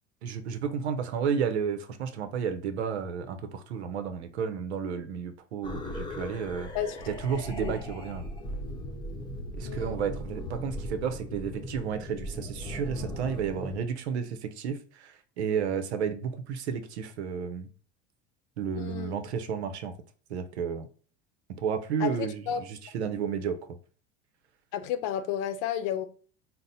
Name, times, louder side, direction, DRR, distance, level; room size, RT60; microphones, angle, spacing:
voice 1, 0.2-6.7 7.1-8.3 9.6-17.7 18.6-19.9 20.3-20.9 21.5-23.6, right 7 dB, 90° right, 0.7 m, -32 dB
sound 1, 5.6-13.8, left 1 dB, 15° left, 0.8 m, -38 dB
voice 2, 6.7-7.1 7.5-7.7 9.6-10.0 18.8-19.1 22.0-22.1 22.5-22.6 24.7-26.1, left 9 dB, 65° left, 0.7 m, -32 dB
4.0 x 2.1 x 3.8 m
hypercardioid pair, 90°, 32 cm